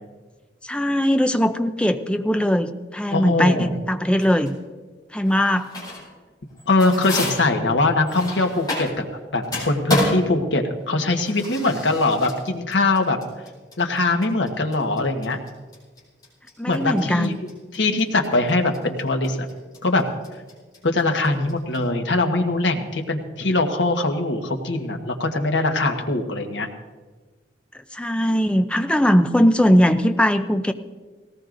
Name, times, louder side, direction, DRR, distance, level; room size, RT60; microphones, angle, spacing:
voice 1, 0.6-4.5 5.1-5.7 16.6-17.4 27.9-30.7, equal, 5° left, 8 dB, 0.5 m, -20 dB
voice 2, 3.1-3.7 6.7-9.0 9.3-13.2 13.8-15.4 16.7-17.4 17.7-19.4 19.8-20.0 20.8-26.7, left 2 dB, 80° left, 4 dB, 1.3 m, -22 dB
sound 1, 4.2-4.6 5.3-6.2 6.5-9.1 9.4-21.8, left 1 dB, 20° left, 4.7 m, -30 dB
19.0 x 18.0 x 2.6 m, 1.4 s
head